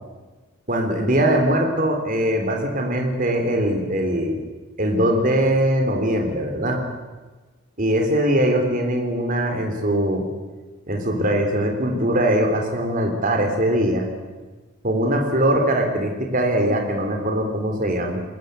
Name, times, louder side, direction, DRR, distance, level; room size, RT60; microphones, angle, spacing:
voice 1, 0.7-4.4 4.8-6.8 7.8-10.2 10.9-14.1 14.8-18.2, right 1 dB, 40° right, 3 dB, 3.7 m, -21 dB
21.0 x 20.0 x 8.0 m, 1.3 s
head